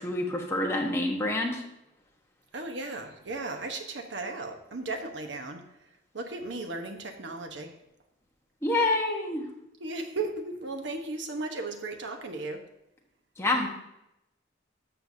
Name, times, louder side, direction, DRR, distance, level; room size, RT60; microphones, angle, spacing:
voice 1, 0.0-1.6 8.6-9.5 13.4-13.7, left 2 dB, 15° left, 0 dB, 1.2 m, -27 dB
voice 2, 2.5-5.6 6.1-7.7 9.8-12.6, right 3 dB, 65° right, 5 dB, 1.0 m, -35 dB
12.5 x 6.8 x 2.8 m, 0.84 s
head